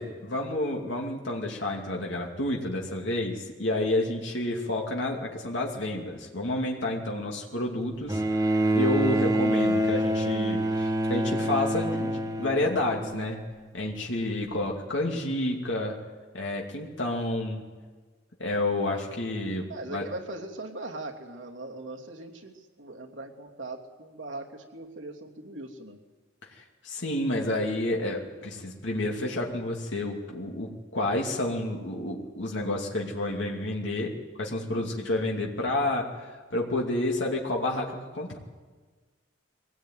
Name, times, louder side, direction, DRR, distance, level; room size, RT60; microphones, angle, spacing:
voice 1, 0.0-13.4 13.7-16.0 16.3-17.6 18.4-20.1 26.5-34.1 34.4-38.4, left 1 dB, 75° left, -1 dB, 2.7 m, -30 dB
Bowed string instrument, 8.1-13.6 14.7-14.8, right 1 dB, 20° right, 1.5 m, -26 dB
voice 2, 19.7-26.0 34.7-34.9, right 2 dB, 80° right, 0 dB, 2.9 m, -40 dB
23.5 x 18.0 x 9.3 m, 1.4 s
head